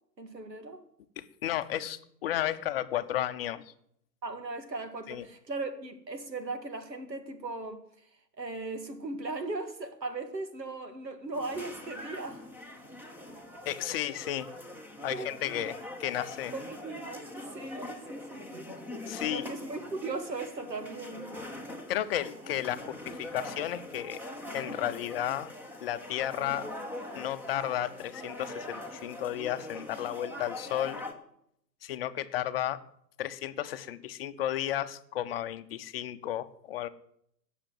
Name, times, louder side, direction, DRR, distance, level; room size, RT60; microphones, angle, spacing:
voice 1, 0.2-0.8 4.2-8.1 8.4-12.4 15.1-15.3 16.5-18.7 19.2-21.3, right 3 dB, 80° right, 2.3 m, -38 dB
voice 2, 1.2-3.7 5.1-5.2 13.7-14.5 15.0-16.5 19.1-19.5 21.9-24.2 24.5-25.5 25.8-26.7 27.1-31.0 31.8-32.8 33.2-36.9, left 12 dB, 35° left, 0.8 m, -33 dB
sound 1, 11.3-31.1, left 1 dB, 5° right, 1.2 m, -42 dB
16.5 x 6.7 x 7.7 m
figure-of-eight pair, 120°, 50 cm